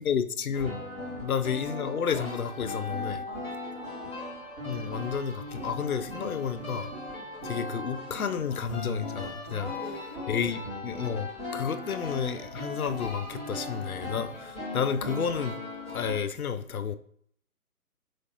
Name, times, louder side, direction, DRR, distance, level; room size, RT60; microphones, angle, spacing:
voice 1, 0.0-0.8 1.1-3.2 4.6-6.9 7.4-9.7 10.3-15.6 15.9-17.0, left 7 dB, 75° left, 0.5 m, -31 dB
sound 1, 0.5-16.2, left 2 dB, 20° left, 1.4 m, -38 dB
voice 2, 3.3-4.2 5.9-6.3 7.1-7.4 9.5-11.1 11.7-12.0 13.9-14.0 14.6-14.8, right 2 dB, 40° right, 0.5 m, -47 dB
4.8 x 3.2 x 2.8 m
figure-of-eight pair, 140°, 44 cm